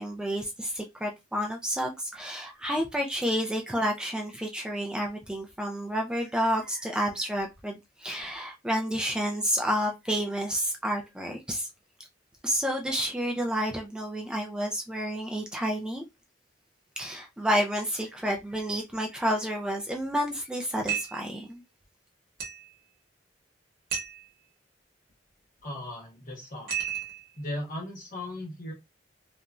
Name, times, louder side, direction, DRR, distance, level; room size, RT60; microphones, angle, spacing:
voice 1, 0.0-11.7 12.4-16.0 17.0-21.6, equal, 5° right, 0.3 m, -30 dB
sound 1, 20.9-21.3 22.4-22.7 23.9-24.3 26.7-27.3, right 8 dB, 55° right, 0.9 m, -32 dB
voice 2, 25.6-26.7 27.3-28.7, left 1 dB, 45° left, 1.4 m, -37 dB
2.9 x 2.2 x 2.4 m
head